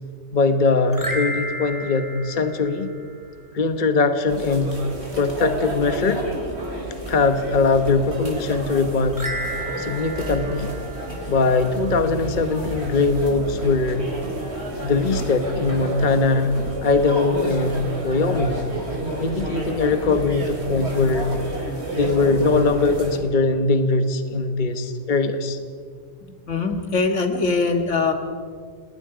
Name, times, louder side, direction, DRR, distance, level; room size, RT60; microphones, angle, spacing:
voice 1, 0.3-2.9 3.5-4.8 5.1-6.2 7.1-9.2 9.8-10.7 11.3-14.0 14.8-16.5 16.8-17.8 18.0-18.6 19.2-21.3 21.9-25.6, left 3 dB, 45° left, 9 dB, 1.3 m, -21 dB
sound 1, 0.9-3.4 9.1-11.7, right 1 dB, 15° right, 2.8 m, -33 dB
sound 2, 4.3-23.2, right 1 dB, 60° right, 3.8 m, -31 dB
voice 2, 26.5-28.1, left 4 dB, 80° left, 6 dB, 2.3 m, -22 dB
28.5 x 20.0 x 5.0 m, 2.1 s
omnidirectional pair, 1.2 m